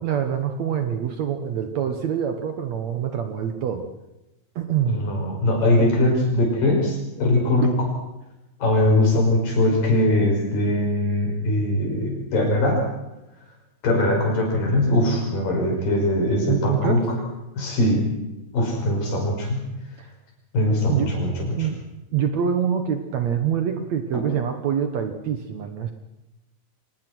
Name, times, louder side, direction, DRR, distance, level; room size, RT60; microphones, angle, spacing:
voice 1, 0.0-3.9 4.6-5.0 16.5-17.0 20.0-20.1 20.9-21.1 21.6-21.8 22.1-25.9, right 8 dB, 60° right, 7 dB, 2.1 m, -25 dB
voice 2, 4.8-7.7 8.6-12.9 13.8-17.0 17.6-18.0 18.5-19.6 20.5-21.7 24.1-24.2, left 1 dB, 65° left, 1 dB, 7.3 m, -21 dB
24.5 x 19.0 x 6.2 m, 0.97 s
omnidirectional pair, 4.2 m